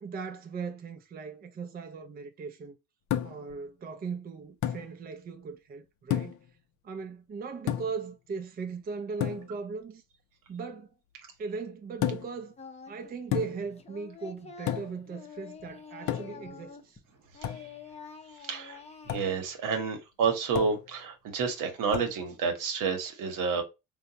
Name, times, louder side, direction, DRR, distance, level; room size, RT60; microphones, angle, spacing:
voice 1, 0.0-2.8 3.2-6.4 6.8-10.0 10.5-10.9 11.4-12.6 12.9-17.0, right 5 dB, 25° right, 0.5 m, -38 dB
sound 1, 3.1-3.5 4.6-4.9 6.1-6.5 7.7-8.1 9.2-9.5 12.0-12.4 13.3-13.7 14.7-15.0 16.1-16.5 17.4-17.7 19.1-19.3 20.5-20.9 21.9-22.2, left 11 dB, 60° left, 0.5 m, -31 dB
Singing, 12.6-13.1 13.4-17.1 17.3-19.4, left 6 dB, 20° left, 0.7 m, -47 dB
voice 2, 18.4-23.6, right 5 dB, 65° right, 1.1 m, -30 dB
3.7 x 2.3 x 2.7 m
supercardioid pair, 80°, 34 cm